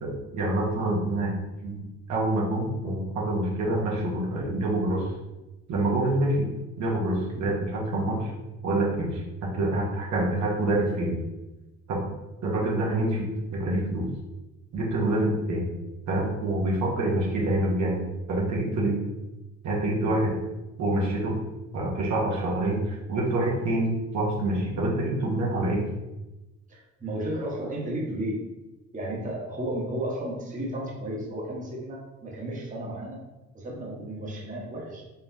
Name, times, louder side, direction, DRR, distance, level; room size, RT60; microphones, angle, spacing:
voice 1, 0.0-1.3 1.6-1.8 2.1-5.1 5.7-6.5 6.8-8.3 8.6-11.2 11.9-12.0 12.4-14.1 14.7-15.7 16.1-19.0 19.6-20.3 20.8-21.3 21.7-25.9, right 1 dB, 65° right, -3 dB, 1.2 m, -26 dB
voice 2, 26.7-28.4 28.9-33.2 33.5-35.0, right 1 dB, 25° right, -4 dB, 1.2 m, -33 dB
4.0 x 3.4 x 2.7 m, 1.0 s
cardioid pair, 100°, 31 cm